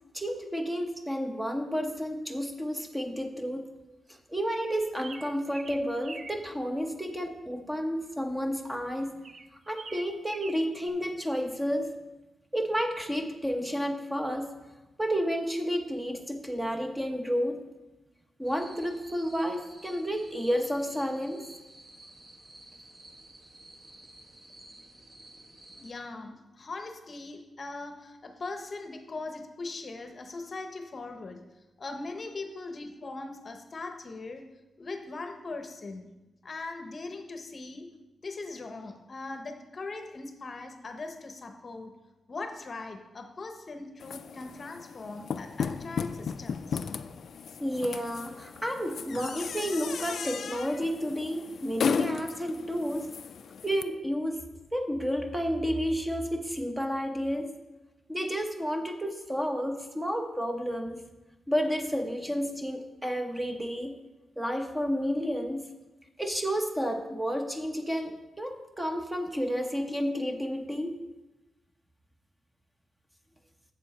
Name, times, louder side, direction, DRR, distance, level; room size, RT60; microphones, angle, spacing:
voice 1, 0.1-3.7 4.1-9.1 9.5-11.9 12.5-14.5 15.0-17.6 18.4-21.4 47.6-53.1 53.6-54.4 54.7-57.5 58.1-61.1 61.5-63.9 64.4-65.7 66.2-71.0, equal, 10° right, 4 dB, 0.8 m, -31 dB
sound 1, 4.5-6.4 9.2-10.9, right 3 dB, 45° right, 0.4 m, -44 dB
sound 2, 18.4-25.9, right 1 dB, 30° right, 1.1 m, -52 dB
voice 2, 25.8-31.4 31.8-34.5 34.8-36.1 36.4-37.9 38.2-41.9 42.3-46.8, left 3 dB, 40° left, 6 dB, 0.8 m, -40 dB
sound 3, 44.0-53.8, left 6 dB, 65° left, 0.3 m, -36 dB
7.8 x 6.9 x 4.2 m, 1.1 s
cardioid pair, 110°, 0 cm